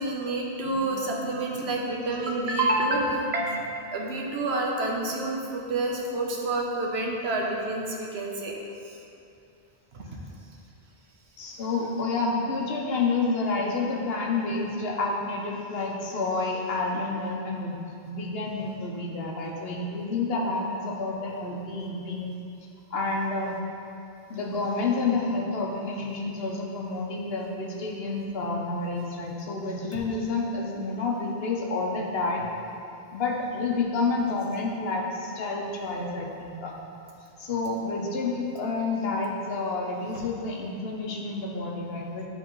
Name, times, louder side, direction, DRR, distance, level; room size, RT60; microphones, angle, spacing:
voice 1, 0.0-3.6 3.9-8.6 8.8-9.0 9.9-10.0, right 2 dB, 85° right, -1 dB, 1.1 m, -28 dB
voice 2, 11.4-17.7 18.0-22.3 22.9-23.6 24.3-32.5 33.1-36.7 37.4-42.3, left 3 dB, 70° left, -1 dB, 1.0 m, -29 dB
10.5 x 3.6 x 3.1 m, 2.6 s
omnidirectional pair, 1.0 m